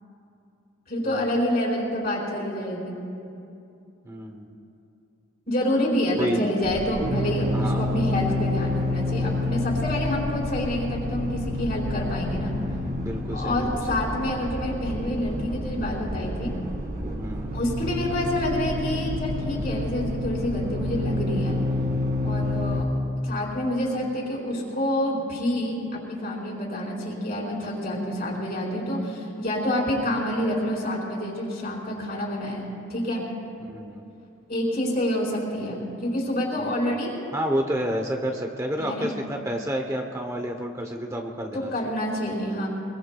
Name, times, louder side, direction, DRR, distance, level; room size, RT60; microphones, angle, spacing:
voice 1, 0.9-3.0 5.5-12.6 13.3-16.5 17.5-21.5 22.2-22.9 23.2-33.2 34.5-37.1 38.8-39.1 41.5-42.7, left 1 dB, 45° left, -4 dB, 4.5 m, -27 dB
voice 2, 4.0-4.5 6.2-6.4 7.5-7.9 10.0-10.1 13.0-13.8 17.2-17.5 22.7-23.0 33.7-34.1 36.6-36.7 37.3-41.7, equal, 15° right, 3 dB, 0.7 m, -30 dB
sound 1, 6.6-22.8, left 1 dB, 45° right, 1.9 m, -29 dB
24.5 x 22.0 x 2.3 m, 2.7 s
head